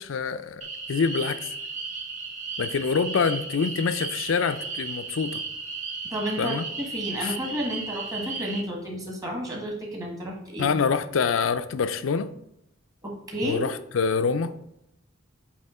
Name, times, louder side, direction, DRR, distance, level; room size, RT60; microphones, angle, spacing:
voice 1, 0.0-1.5 2.6-5.4 6.4-6.6 7.2-7.4 10.6-12.3 13.4-14.5, left 5 dB, 75° left, 12 dB, 0.4 m, -26 dB
sound 1, 0.6-8.6, right 4 dB, 40° right, 1.1 m, -35 dB
voice 2, 6.0-10.7 13.0-13.6, equal, 20° right, -1 dB, 1.4 m, -32 dB
7.8 x 3.0 x 4.2 m, 0.83 s
head